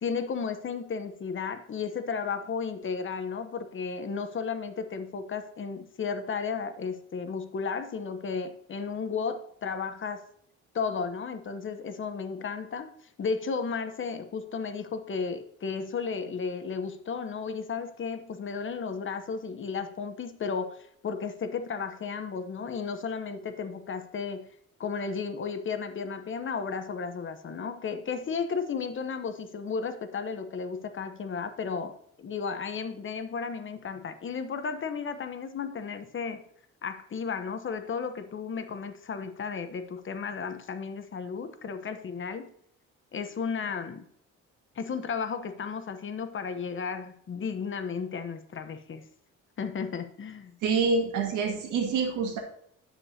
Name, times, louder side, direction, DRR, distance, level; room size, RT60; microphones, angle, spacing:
voice 1, 0.0-10.2 10.7-12.9 13.2-24.5 24.8-36.4 36.8-42.5 43.1-44.1 44.7-49.0 49.6-50.5, left 5 dB, 40° left, 9 dB, 0.9 m, -34 dB
voice 2, 50.6-52.4, right 4 dB, 85° right, 1 dB, 1.8 m, -26 dB
10.0 x 7.0 x 2.8 m, 0.67 s
cardioid pair, 90°, 30 cm